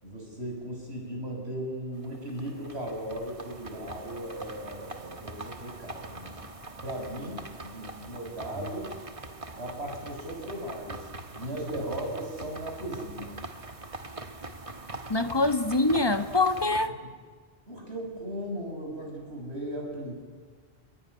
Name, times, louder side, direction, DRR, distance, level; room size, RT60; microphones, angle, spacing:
voice 1, 0.0-6.4 6.8-8.9 9.6-11.1 11.4-13.3 17.7-20.2, right 1 dB, 80° right, 7.4 m, -37 dB
sound 1, 1.9-16.9, right 2 dB, 30° right, 1.4 m, -43 dB
voice 2, 15.1-17.0, left 2 dB, 25° left, 1.5 m, -24 dB
28.0 x 20.5 x 9.9 m
omnidirectional pair, 1.1 m